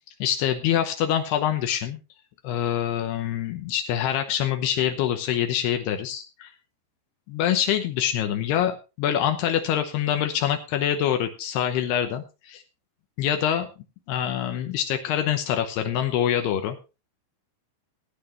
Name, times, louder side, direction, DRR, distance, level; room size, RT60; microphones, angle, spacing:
voice 1, 0.2-2.0 2.4-6.5 7.3-12.6 13.2-13.7 14.1-16.8, left 10 dB, 80° left, 6 dB, 3.0 m, -25 dB
18.5 x 9.2 x 3.1 m, 0.30 s
omnidirectional pair, 4.6 m